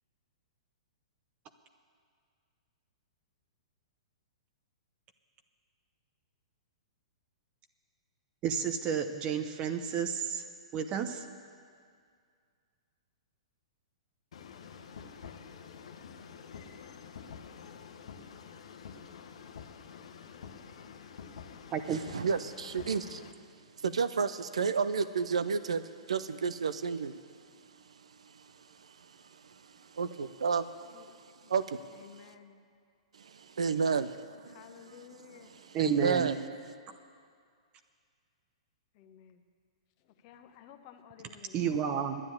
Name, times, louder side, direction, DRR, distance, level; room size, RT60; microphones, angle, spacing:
voice 1, 8.4-10.4 10.7-11.3 21.7-22.0 35.7-36.3 41.5-42.2, right 8 dB, 30° right, 7 dB, 0.7 m, -31 dB
sound 1, 14.3-23.3, left 6 dB, 70° left, 1.0 m, -48 dB
voice 2, 21.9-23.2 23.8-25.8 26.1-27.2 28.2-32.3 33.1-36.4 36.7-36.8, right 5 dB, 75° right, 13 dB, 0.6 m, -33 dB
voice 3, 32.0-32.6 34.5-35.5 38.9-39.4 40.2-41.7, left 9 dB, 45° left, 7 dB, 1.1 m, -53 dB
10.5 x 9.8 x 8.7 m, 2.1 s
hypercardioid pair, 115°, 3 cm